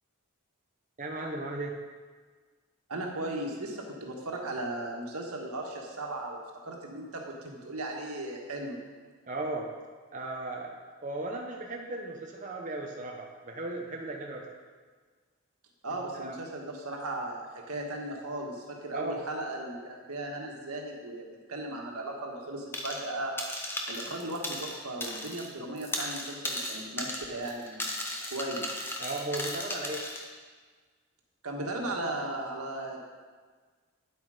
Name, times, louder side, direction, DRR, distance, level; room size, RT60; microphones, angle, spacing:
voice 1, 1.0-1.8 9.3-9.7 10.1-14.5 16.1-16.4 18.9-19.2 29.0-30.0, right 2 dB, 35° right, 0 dB, 0.9 m, -36 dB
voice 2, 2.9-8.8 15.8-23.4 23.9-27.9 28.3-28.9 31.4-33.0, right 2 dB, 85° right, 0 dB, 1.7 m, -37 dB
sound 1, 22.7-23.1 23.4-25.5 25.8-30.2, left 1 dB, 10° left, 0.9 m, -36 dB
10.0 x 8.2 x 5.0 m, 1.5 s
head